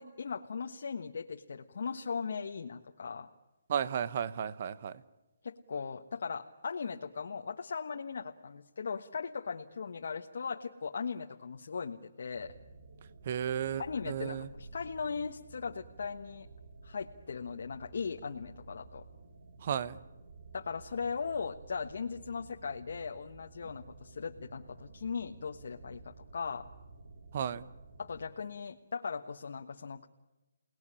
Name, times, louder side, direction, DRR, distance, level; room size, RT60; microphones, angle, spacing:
voice 1, 0.0-3.3 5.4-12.5 13.8-16.5 16.8-19.0 20.5-26.6 28.0-30.1, left 5 dB, 60° left, 3 dB, 1.4 m, -38 dB
voice 2, 3.7-4.9 13.3-14.5 19.6-20.0 27.3-27.7, right 8 dB, 35° right, 17 dB, 0.9 m, -33 dB
sound 1, 12.3-28.3, right 3 dB, 60° right, 3.1 m, -53 dB
29.0 x 19.5 x 10.0 m, 1.1 s
hypercardioid pair, 170°, 0 cm